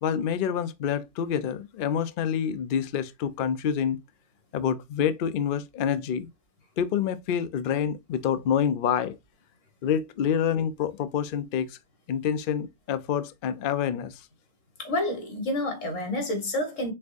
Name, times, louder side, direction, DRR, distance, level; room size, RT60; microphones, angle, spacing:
voice 1, 0.0-4.0 4.5-6.3 6.8-9.2 9.8-11.8 12.1-14.2, left 8 dB, 90° left, 0.4 m, -27 dB
voice 2, 14.8-16.9, left 1 dB, 60° left, 1.7 m, -29 dB
4.5 x 3.5 x 2.4 m
omnidirectional pair, 1.5 m